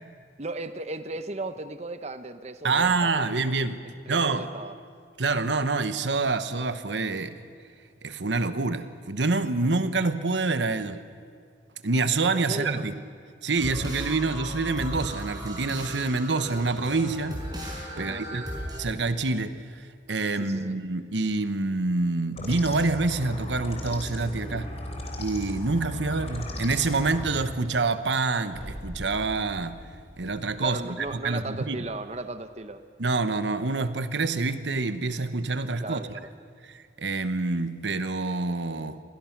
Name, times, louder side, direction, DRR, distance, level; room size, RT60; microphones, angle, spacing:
voice 1, 0.4-3.4 3.8-4.8 12.2-12.9 17.9-18.5 20.3-20.8 30.6-32.8 35.8-36.3, right 2 dB, 40° right, 10 dB, 0.9 m, -36 dB
voice 2, 2.6-3.8 4.1-4.5 5.2-7.4 8.0-11.0 11.8-12.9 13.4-17.5 18.0-18.4 18.8-24.7 25.2-29.9 30.2-30.8 31.2-31.8 33.0-36.0 36.7-39.0, right 3 dB, 90° right, 11 dB, 1.2 m, -27 dB
sound 1, 13.6-18.8, right 1 dB, 25° right, 5.2 m, -36 dB
sound 2, 22.3-27.4, left 1 dB, 35° left, 3.6 m, -36 dB
sound 3, 28.4-32.7, equal, 5° right, 5.7 m, -44 dB
28.0 x 21.5 x 6.0 m, 2.2 s
head